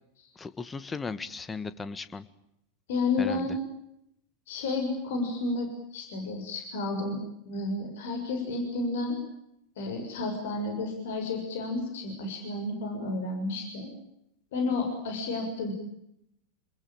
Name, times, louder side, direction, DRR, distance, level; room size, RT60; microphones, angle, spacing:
voice 1, 0.3-2.2 3.2-3.5, left 4 dB, 15° left, 14 dB, 1.6 m, -36 dB
voice 2, 2.9-3.6 4.5-7.2 7.4-9.2 9.8-13.9 14.5-15.7, left 3 dB, 55° left, 4 dB, 6.8 m, -31 dB
28.5 x 21.0 x 9.0 m, 0.79 s
figure-of-eight pair, 90°, 0 cm